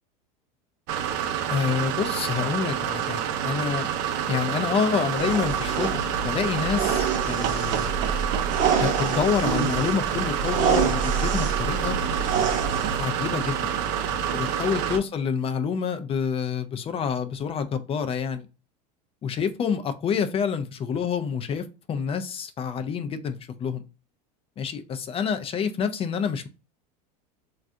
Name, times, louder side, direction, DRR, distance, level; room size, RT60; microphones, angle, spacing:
sound 1, 0.9-15.0, right 9 dB, 60° right, 0.5 m, -28 dB
voice 1, 1.5-3.9 4.3-7.9 8.8-12.0 12.9-13.7 14.3-18.5 19.2-23.8 24.6-26.5, left 7 dB, 30° left, 9 dB, 0.4 m, -27 dB
sound 2, 5.1-13.0, right 6 dB, 40° right, 0.9 m, -27 dB
3.2 x 2.4 x 2.5 m, 0.31 s
hypercardioid pair, 95°, 21 cm